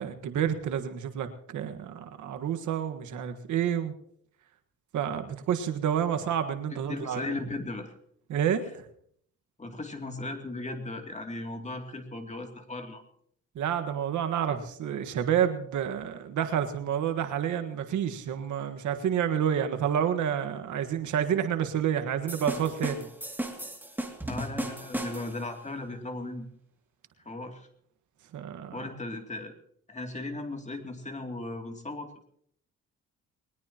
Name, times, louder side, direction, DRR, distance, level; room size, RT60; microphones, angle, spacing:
voice 1, 0.0-3.9 4.9-7.3 8.3-8.8 13.5-23.1 28.3-28.9, right 9 dB, 75° right, 7 dB, 1.6 m, -29 dB
voice 2, 6.7-7.9 9.6-13.0 24.3-26.5 27.2-27.7 28.7-29.5 29.9-32.2, left 2 dB, 25° left, 4 dB, 2.7 m, -37 dB
sound 1, 22.3-25.5, right 1 dB, 5° right, 2.4 m, -35 dB
21.0 x 20.0 x 3.0 m, 0.65 s
cardioid pair, 90°, 30 cm